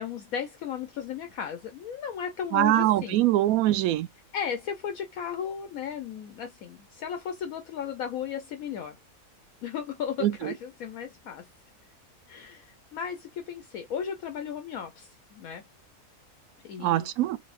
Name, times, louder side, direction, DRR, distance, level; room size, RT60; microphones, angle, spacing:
voice 1, 0.0-3.3 4.3-9.0 9.6-11.5 12.3-15.6 16.6-17.1, left 8 dB, 70° left, 1.0 m, -35 dB
voice 2, 2.5-4.1 10.2-10.5 16.8-17.4, right 14 dB, 70° right, 1.0 m, -23 dB
4.0 x 3.4 x 2.4 m
omnidirectional pair, 1.7 m